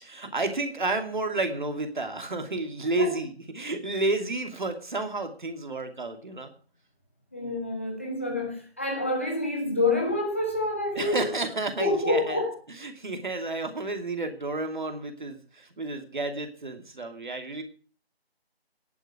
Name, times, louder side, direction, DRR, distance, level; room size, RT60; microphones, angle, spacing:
voice 1, 0.0-6.5 11.0-12.4 12.8-17.6, right 2 dB, 50° right, 2.5 m, -31 dB
voice 2, 7.3-11.3 11.8-12.5, left 2 dB, 10° left, 0.9 m, -27 dB
11.0 x 8.9 x 8.1 m
figure-of-eight pair, 160°, 31 cm